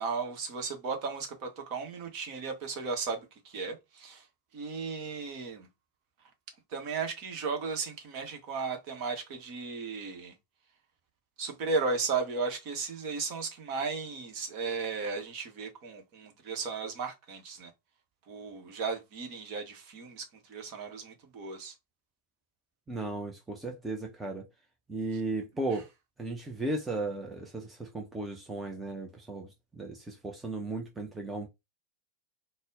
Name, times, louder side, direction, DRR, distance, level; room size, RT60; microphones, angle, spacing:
voice 1, 0.0-4.3 4.5-5.7 6.7-10.3 11.4-17.7 18.3-21.7, right 4 dB, 45° right, 1.1 m, -35 dB
voice 2, 22.9-24.5 24.9-25.9 26.2-31.5, right 2 dB, 10° right, 0.7 m, -35 dB
4.1 x 2.2 x 3.7 m
figure-of-eight pair, 90°, 0 cm